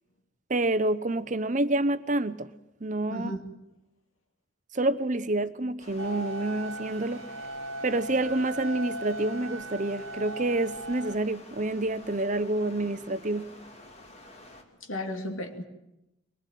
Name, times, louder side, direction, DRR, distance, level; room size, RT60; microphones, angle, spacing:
voice 1, 0.5-2.5 2.8-3.3 4.7-7.3 7.8-13.5, right 2 dB, 40° right, 0.8 m, -28 dB
voice 2, 3.1-3.5 14.8-15.6, left 1 dB, 85° left, 2.8 m, -34 dB
Stream, 5.8-14.6, left 1 dB, 30° left, 2.8 m, -50 dB
sound 1, 6.0-11.2, right 1 dB, 85° right, 1.0 m, -38 dB
23.0 x 20.0 x 9.3 m
head